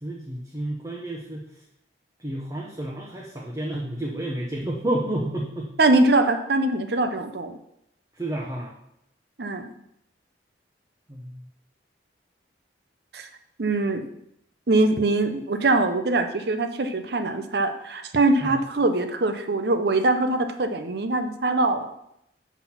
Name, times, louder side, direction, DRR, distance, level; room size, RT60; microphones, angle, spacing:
voice 1, 0.0-1.4 2.2-5.7 8.2-8.7 11.1-11.4 18.4-18.6, right 1 dB, 20° right, -2 dB, 0.9 m, -30 dB
voice 2, 5.8-7.6 9.4-9.7 13.1-13.3 13.6-14.1 14.7-21.9, right 2 dB, 60° right, 8 dB, 0.7 m, -22 dB
5.9 x 5.9 x 5.8 m, 0.78 s
head